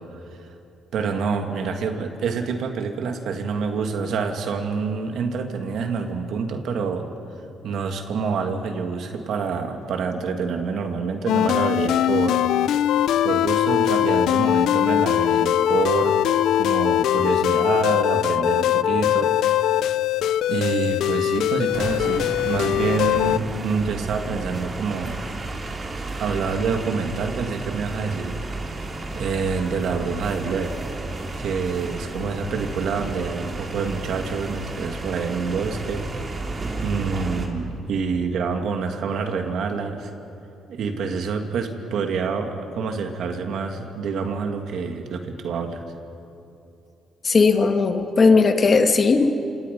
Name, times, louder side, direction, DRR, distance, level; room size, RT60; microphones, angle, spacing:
voice 1, 0.1-0.5 0.9-7.1 7.6-12.4 13.2-16.2 16.5-19.3 20.5-25.1 26.2-30.8 31.4-36.1 36.3-36.4 36.7-40.1 40.7-45.9, right 5 dB, 70° right, 5 dB, 2.3 m, -27 dB
sound 1, 11.3-23.4, left 11 dB, 85° left, 0.5 m, -21 dB
sound 2, 21.7-37.5, right 2 dB, 35° right, 3.3 m, -32 dB
voice 2, 47.2-49.3, left 4 dB, 40° left, 5 dB, 2.0 m, -17 dB
27.5 x 27.0 x 5.4 m, 2.7 s
cardioid pair, 90°, 0 cm